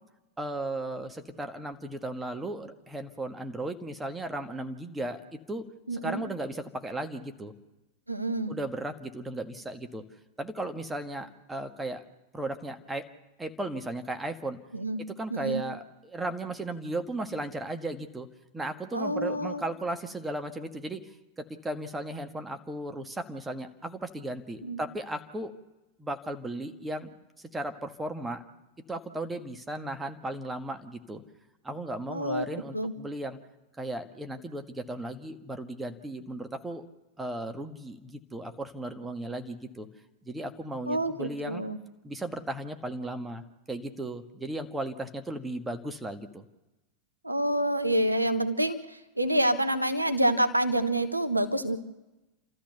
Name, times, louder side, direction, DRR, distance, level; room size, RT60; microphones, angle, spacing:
voice 1, 0.4-5.2 5.5-5.6 5.9-7.5 8.5-10.0 10.4-12.0 12.3-13.1 13.4-14.6 15.2-18.3 18.5-25.5 26.0-27.1 27.5-28.4 28.9-31.2 31.6-33.4 33.8-36.8 37.2-39.9 40.2-41.6 42.0-46.4, right 1 dB, 10° right, 7 dB, 1.6 m, -36 dB
voice 2, 5.9-6.2 8.1-8.5 14.7-15.0 15.3-15.6 18.9-19.6 24.6-24.8 32.1-32.9 40.9-41.8 47.2-51.8, right 1 dB, 85° right, 8 dB, 1.2 m, -28 dB
29.5 x 13.5 x 6.9 m, 1.0 s
figure-of-eight pair, 90°, 0 cm